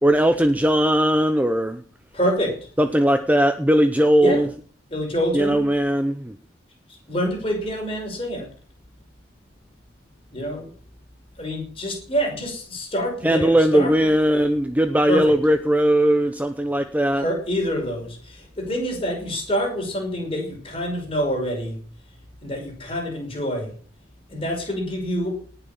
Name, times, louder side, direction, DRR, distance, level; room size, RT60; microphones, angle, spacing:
voice 1, 0.0-1.8 2.8-4.5 5.3-6.3 13.2-17.2, equal, 10° right, 8 dB, 0.7 m, -19 dB
voice 2, 2.1-2.6 4.2-4.4 4.9-5.7 7.1-8.5 10.3-10.7 11.4-13.9 15.1-15.3 17.1-21.8 22.4-23.7 24.3-25.4, equal, 25° left, 2 dB, 5.5 m, -26 dB
19.0 x 7.0 x 7.1 m, 0.42 s
head